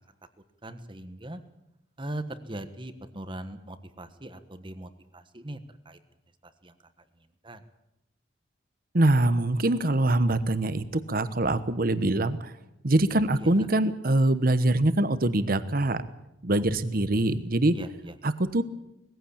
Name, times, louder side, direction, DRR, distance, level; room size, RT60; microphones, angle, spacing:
voice 1, 0.6-1.4 2.0-5.6 5.8-6.0 6.4-6.7 7.4-7.6 13.4-13.7 16.9-17.3 17.7-18.1, right 1 dB, 25° right, 10 dB, 1.3 m, -40 dB
voice 2, 8.9-12.5 12.8-16.0 16.4-17.7 18.2-18.6, right 1 dB, 50° right, 13 dB, 1.1 m, -24 dB
20.0 x 15.5 x 8.6 m, 0.89 s
head